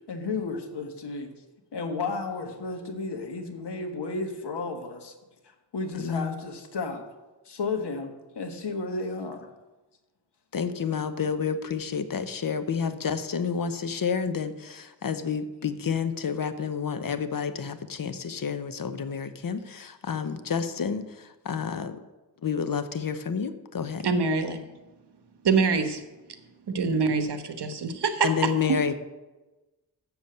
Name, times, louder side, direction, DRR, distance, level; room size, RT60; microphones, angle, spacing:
voice 1, 0.1-1.3 1.7-5.1 5.4-7.0 7.4-9.5, left 3 dB, 70° left, 5 dB, 1.5 m, -33 dB
voice 2, 6.0-6.4 10.5-22.0 22.4-24.1 28.2-28.9, left 6 dB, 55° left, 10 dB, 0.8 m, -30 dB
voice 3, 24.0-24.6 25.4-26.0 26.7-28.5, right 4 dB, 70° right, 8 dB, 1.2 m, -25 dB
7.1 x 6.9 x 7.8 m, 1.1 s
wide cardioid pair, 80°, 42 cm